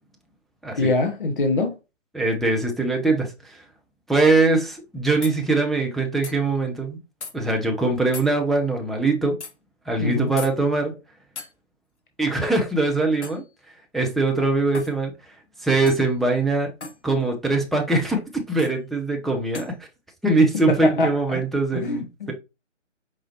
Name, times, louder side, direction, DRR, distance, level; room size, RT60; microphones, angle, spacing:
voice 1, 0.8-1.8 10.0-10.3 20.7-21.4 21.7-22.3, left 2 dB, 45° left, 0.8 m, -23 dB
voice 2, 2.1-3.6 4.1-7.0 7.3-9.4 9.9-10.9 12.2-13.4 13.9-15.1 15.6-16.7 17.0-18.2 18.5-19.7 20.2-22.3, right 3 dB, ahead, 0.3 m, -22 dB
sound 1, 4.7-4.8 5.2-5.4 6.2-6.4 7.2-7.3 8.1-8.3 9.4-9.5 10.4-10.5 11.4-11.5 13.2-13.5 14.7-15.0 15.9-16.1 16.8-17.0 18.6-18.7 19.5-19.7, left 4 dB, 65° left, 1.3 m, -36 dB
4.7 x 4.0 x 2.8 m
hypercardioid pair, 165°, 38 cm